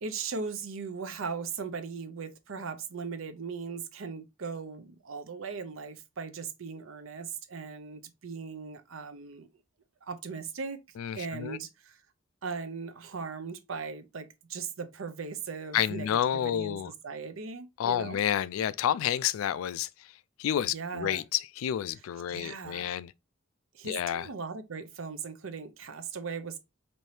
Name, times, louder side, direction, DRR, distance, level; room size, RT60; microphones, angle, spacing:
voice 1, 0.0-9.5 10.1-10.8 11.1-12.0 12.4-18.2 20.6-21.2 22.3-23.0 23.7-26.6, right 5 dB, 75° right, 0.6 m, -38 dB
voice 2, 11.0-11.6 15.7-16.9 17.8-19.9 20.4-23.1 23.8-24.3, left 10 dB, 85° left, 0.3 m, -30 dB
4.3 x 2.7 x 3.1 m
head